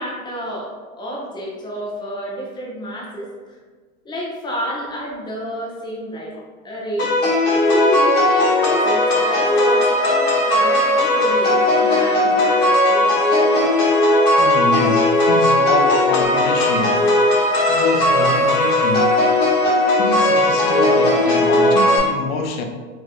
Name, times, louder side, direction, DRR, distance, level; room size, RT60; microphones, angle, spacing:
voice 1, 0.0-3.6 4.0-7.1 7.5-13.2, equal, 10° left, 0.6 m, -29 dB
sound 1, 7.0-22.0, left 1 dB, 55° left, 1.2 m, -17 dB
voice 2, 14.4-17.3 17.7-19.3 19.9-22.6, left 3 dB, 75° left, 0.6 m, -25 dB
3.0 x 2.8 x 2.5 m
hypercardioid pair, 110°, 42 cm